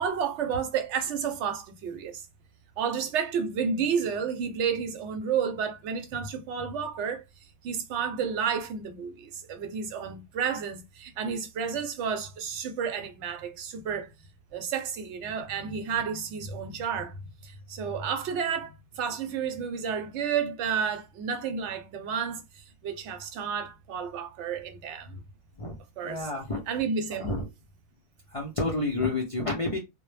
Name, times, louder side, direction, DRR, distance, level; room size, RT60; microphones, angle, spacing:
voice 1, 0.0-2.2 2.8-7.2 7.6-14.1 14.5-17.1 17.4-25.2 26.0-26.3 26.7-27.3, right 6 dB, 80° right, 0.9 m, -31 dB
voice 2, 26.0-26.6 27.2-27.4 28.3-29.8, left 2 dB, 50° left, 0.4 m, -29 dB
2.1 x 2.0 x 3.1 m
omnidirectional pair, 1.2 m